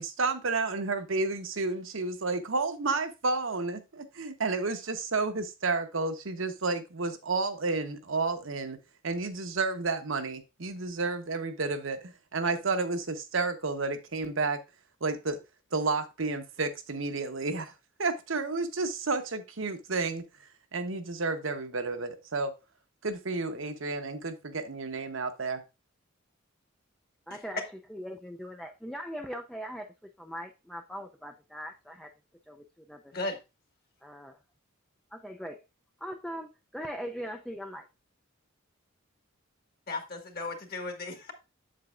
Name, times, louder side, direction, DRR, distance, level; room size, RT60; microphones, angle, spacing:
voice 1, 0.0-8.8 9.0-14.6 15.0-15.4 15.7-17.7 18.0-20.2 20.7-22.5 23.0-25.6, right 3 dB, 70° right, 1.0 m, -31 dB
voice 2, 27.3-29.9 30.2-32.1 32.5-33.1 34.0-34.4 35.1-35.6 36.0-37.8, equal, 5° left, 0.4 m, -40 dB
voice 3, 39.9-41.3, left 2 dB, 45° left, 1.6 m, -35 dB
7.8 x 7.6 x 2.4 m
head